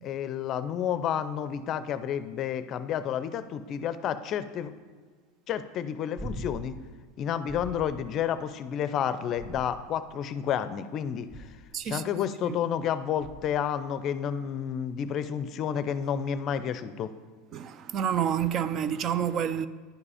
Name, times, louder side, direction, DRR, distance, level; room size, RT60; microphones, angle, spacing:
voice 1, 0.0-4.7 5.5-6.7 7.2-11.5 11.8-17.1, left 9 dB, 40° left, 0.5 m, -30 dB
sound 1, 6.2-6.8 7.5-8.0 9.3-10.1 11.3-11.8 13.2-13.6 16.0-16.1, right 1 dB, 20° right, 1.2 m, -41 dB
voice 2, 17.5-19.7, right 9 dB, 40° right, 0.4 m, -28 dB
10.5 x 4.9 x 4.9 m
supercardioid pair, 120°, 0 cm